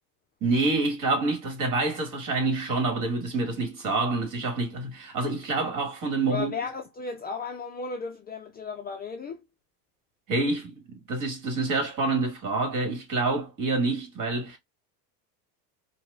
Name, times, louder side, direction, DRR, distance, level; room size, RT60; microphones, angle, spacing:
voice 1, 0.4-6.5 10.3-10.7 11.1-14.6, right 3 dB, 40° right, 2.0 m, -27 dB
voice 2, 6.3-9.4, left 4 dB, 20° left, 0.5 m, -35 dB
4.6 x 2.4 x 2.3 m
supercardioid pair, 110°, 47 cm